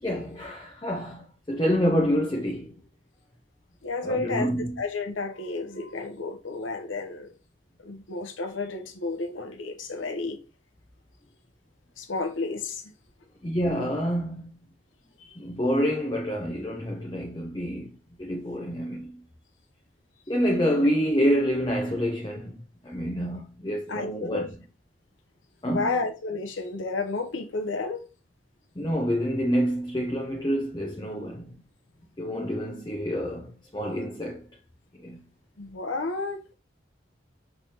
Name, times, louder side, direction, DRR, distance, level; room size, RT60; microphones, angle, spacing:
voice 1, 0.0-2.7 4.0-4.8 13.4-14.5 15.4-19.2 20.3-24.5 25.6-25.9 28.8-31.6 32.2-34.4 35.0-35.2, equal, 20° left, 0.5 m, -27 dB
voice 2, 3.8-7.3 7.8-10.4 12.0-12.8 15.2-15.3 23.9-24.5 25.7-28.0 35.6-36.5, left 3 dB, 85° left, 0.8 m, -31 dB
5.9 x 3.2 x 2.8 m
head